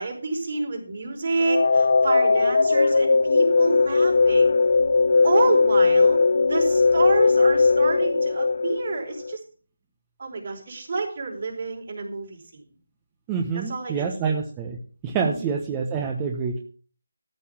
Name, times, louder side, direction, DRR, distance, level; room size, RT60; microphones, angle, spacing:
voice 1, 0.0-4.5 5.2-9.4 10.2-12.6 13.5-14.4 15.2-15.5, right 3 dB, 50° right, 0 dB, 4.6 m, -29 dB
sound 1, 1.4-9.4, left 4 dB, 60° left, 0.5 m, -19 dB
voice 2, 13.3-14.8 15.0-16.6, right 6 dB, 15° right, 2 dB, 1.0 m, -27 dB
13.5 x 5.6 x 7.2 m, 0.42 s
figure-of-eight pair, 165°, 0 cm